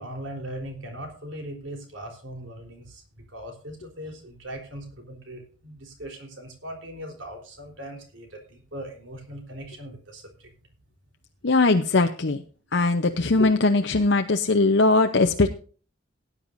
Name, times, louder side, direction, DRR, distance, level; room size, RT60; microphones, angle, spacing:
voice 1, 0.0-3.0 3.3-10.5, right 1 dB, 80° right, 3 dB, 3.7 m, -39 dB
voice 2, 11.4-12.4 12.7-15.5, left 3 dB, 65° left, 5 dB, 0.8 m, -20 dB
18.5 x 9.9 x 2.6 m, 0.39 s
head